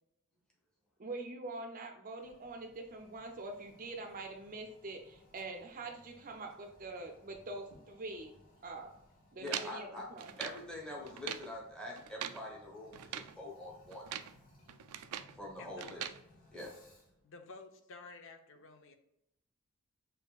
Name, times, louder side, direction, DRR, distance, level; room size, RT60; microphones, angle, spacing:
voice 1, 1.0-8.3 8.6-8.9 9.3-10.5, right 2 dB, 40° right, 4 dB, 0.5 m, -44 dB
Toilet flush, 2.2-17.2, left 1 dB, 40° left, 1.5 m, -64 dB
voice 2, 9.4-10.1 10.4-14.1 15.4-16.0 16.5-16.7, left 1 dB, 5° left, -3 dB, 1.0 m, -44 dB
sound 1, 9.5-10.6 11.1-11.5 12.0-12.4 12.9-13.4 13.9-14.4 14.7-15.4 15.8-16.2, right 10 dB, 90° right, 0.3 m, -42 dB
voice 3, 15.6-15.9 17.2-18.9, left 3 dB, 60° left, 6 dB, 0.6 m, -52 dB
6.3 x 2.6 x 2.3 m, 0.82 s
head